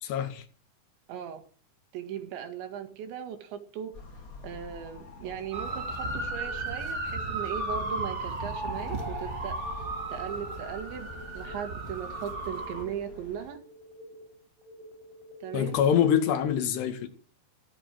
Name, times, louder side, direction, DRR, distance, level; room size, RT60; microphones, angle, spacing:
voice 1, 0.0-0.4 15.5-17.1, left 9 dB, 70° left, 3.9 m, -25 dB
voice 2, 1.1-1.4 1.9-3.9 4.4-9.5 10.1-13.6 15.4-15.8, right 9 dB, 90° right, 4.4 m, -38 dB
sound 1, 3.9-13.5, left 3 dB, 40° left, 1.2 m, -47 dB
sound 2, 5.5-12.8, right 2 dB, 25° right, 1.6 m, -34 dB
sound 3, 6.4-16.4, equal, 65° right, 7.5 m, -50 dB
14.5 x 13.0 x 7.7 m
omnidirectional pair, 5.0 m